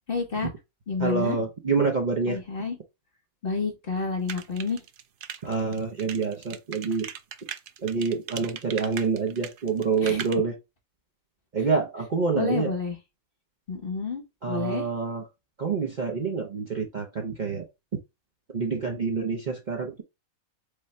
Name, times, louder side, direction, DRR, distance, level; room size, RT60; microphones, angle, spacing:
voice 1, 0.1-0.5 0.9-1.4 2.3-2.8 3.4-4.8 10.0-10.2 12.3-12.9 13.7-14.9, left 4 dB, 45° left, 1.0 m, -29 dB
voice 2, 1.0-2.4 5.4-7.1 7.8-10.5 11.5-12.7 14.4-15.3 15.6-17.7 18.5-20.0, right 5 dB, 40° right, 0.7 m, -27 dB
sound 1, 4.3-10.3, right 9 dB, 85° right, 0.4 m, -38 dB
5.0 x 2.2 x 4.2 m
omnidirectional pair, 1.5 m